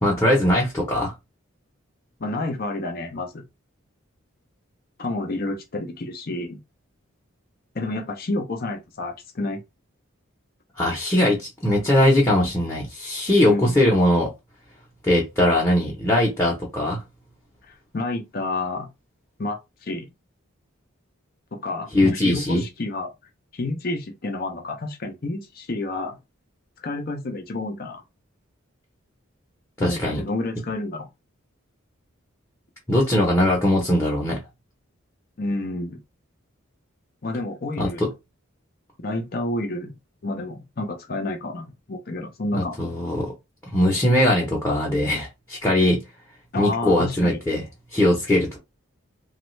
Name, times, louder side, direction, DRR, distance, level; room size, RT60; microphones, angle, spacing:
voice 1, 0.0-1.1 10.8-14.3 15.0-17.0 21.9-22.6 29.8-30.2 32.9-34.4 37.8-38.1 42.5-43.3 43.7-46.0 46.6-47.6 47.9-48.6, left 1 dB, 10° left, 0.8 m, -20 dB
voice 2, 2.2-3.4 5.0-6.6 7.7-9.6 13.4-13.8 17.7-18.9 19.4-20.1 21.5-23.1 23.5-26.2 26.8-28.0 29.8-31.1 35.4-36.0 37.2-38.0 39.0-39.9 40.2-42.8 46.5-47.4, left 2 dB, 45° left, 0.6 m, -29 dB
3.1 x 2.3 x 3.1 m
head